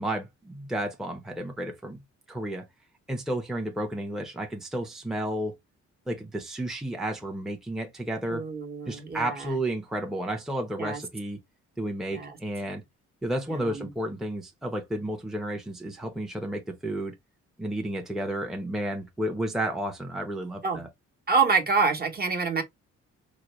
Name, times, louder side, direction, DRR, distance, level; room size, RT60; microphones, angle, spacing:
voice 1, 0.0-2.0 2.3-2.6 3.1-5.6 6.1-8.4 8.9-11.4 11.8-12.8 13.2-17.1 17.6-20.9, right 1 dB, ahead, 0.8 m, -32 dB
voice 2, 8.3-9.6 10.8-11.0 12.1-12.4 13.5-13.9 20.6-20.8 21.3-22.6, right 4 dB, 30° right, 1.1 m, -27 dB
5.0 x 2.1 x 3.0 m
cardioid pair, 90°, 30 cm